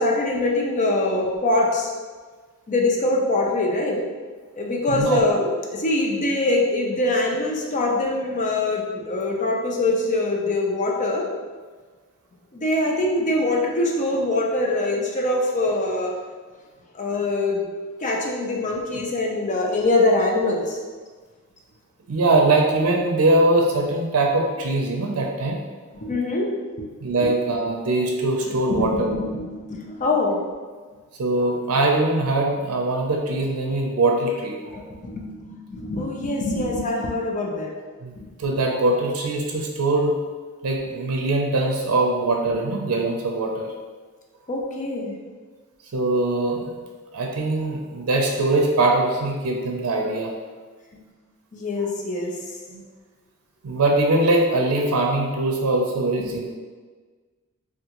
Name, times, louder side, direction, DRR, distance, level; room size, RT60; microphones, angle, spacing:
voice 1, 0.0-1.9 2.7-4.0 4.6-11.3 12.5-16.1 16.9-17.7 18.0-20.8 26.0-26.5 26.8-26.9 27.2-27.3 28.4-30.4 34.7-37.7 38.2-38.3 44.5-45.1 50.9-51.0 51.5-52.4 56.2-56.3, left 2 dB, 35° left, 0 dB, 0.5 m, -23 dB
voice 2, 22.1-25.6 27.0-29.1 31.2-34.8 38.0-40.1 40.6-43.7 45.9-46.8 47.1-50.3 52.7-52.8 53.6-56.5, right 2 dB, 85° right, 0 dB, 0.5 m, -22 dB
3.5 x 2.3 x 2.9 m, 1.5 s
head